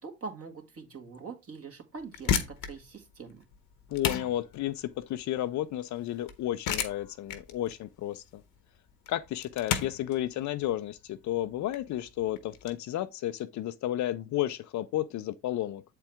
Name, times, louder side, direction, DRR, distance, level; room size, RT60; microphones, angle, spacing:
voice 1, 0.0-3.5, right 5 dB, 45° right, 2.1 m, -43 dB
sound 1, 2.0-12.7, left 8 dB, 75° left, 1.1 m, -35 dB
voice 2, 3.9-8.4 9.1-15.8, left 13 dB, 60° left, 0.6 m, -32 dB
7.6 x 4.5 x 3.5 m
supercardioid pair, 65°, 34 cm